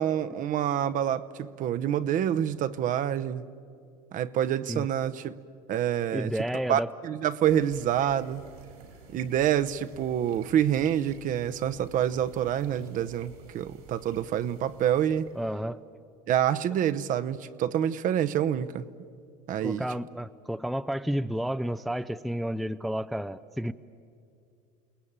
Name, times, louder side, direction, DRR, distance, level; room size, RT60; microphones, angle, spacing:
voice 1, 0.0-3.4 4.1-5.4 5.7-6.3 6.7-8.4 9.1-15.3 16.3-18.9 19.5-19.8, right 10 dB, 45° right, 0.9 m, -27 dB
voice 2, 6.1-6.9 15.4-15.8 19.6-23.7, equal, ahead, 0.5 m, -31 dB
sound 1, 7.4-15.5, right 6 dB, 85° right, 4.9 m, -50 dB
29.0 x 20.0 x 8.8 m
supercardioid pair, 100°, 18 cm